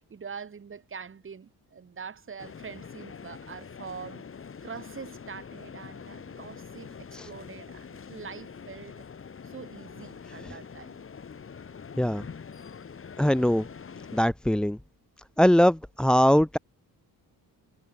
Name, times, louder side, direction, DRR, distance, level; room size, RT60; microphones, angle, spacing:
voice 1, 0.0-4.3 4.6-9.0 9.4-11.0, right 6 dB, 30° right, 4.6 m, -44 dB
sound 1, 2.4-14.2, left 6 dB, 35° left, 5.1 m, -44 dB
voice 2, 13.2-13.7 14.1-14.8 15.4-16.6, equal, 5° left, 0.3 m, -22 dB
cardioid pair, 160°, 38 cm